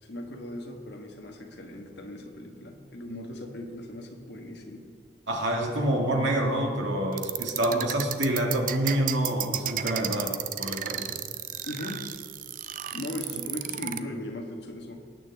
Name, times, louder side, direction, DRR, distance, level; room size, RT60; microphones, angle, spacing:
voice 1, 0.0-4.9 11.6-12.1 12.9-15.0, left 1 dB, 65° left, 2 dB, 1.6 m, -38 dB
voice 2, 5.3-10.3 10.6-11.2, right 1 dB, 80° right, 0 dB, 2.2 m, -27 dB
sound 1, 7.1-14.0, right 11 dB, 45° right, 0.5 m, -33 dB
19.5 x 9.0 x 3.6 m, 2.2 s
head